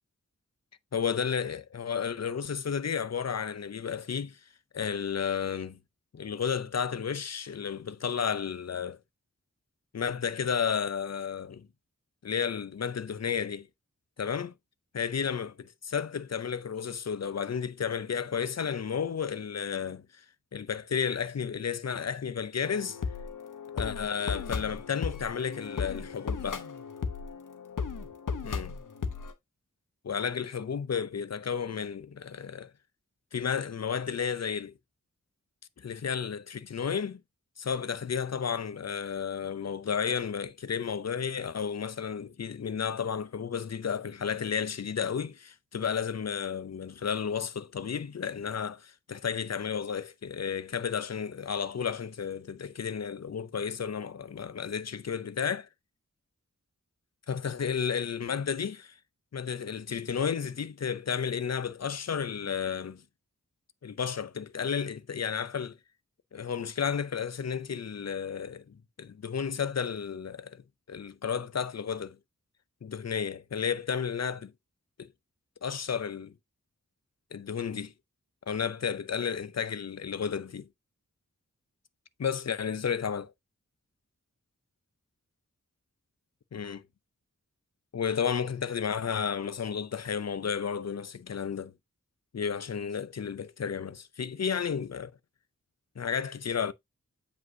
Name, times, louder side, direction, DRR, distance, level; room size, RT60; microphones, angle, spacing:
voice 1, 0.9-4.4 4.7-5.8 6.1-9.0 9.9-11.7 12.2-13.7 14.2-14.5 14.9-20.2 20.5-23.0 23.7-26.7 28.4-28.8 30.0-32.7 33.3-34.7 35.8-37.2 37.6-55.7 57.3-59.0 59.3-63.0 63.8-65.8 66.3-70.6 70.9-72.2 72.8-74.5 75.0-75.1 75.6-76.3 77.3-77.9 78.5-80.7 82.2-83.3 86.5-86.8 87.9-91.7 92.3-95.1 96.0-96.7, left 7 dB, 55° left, 0.6 m, -32 dB
sound 1, 22.6-29.3, left 5 dB, 80° left, 0.9 m, -36 dB
7.9 x 5.2 x 2.6 m
wide cardioid pair, 65°, 31 cm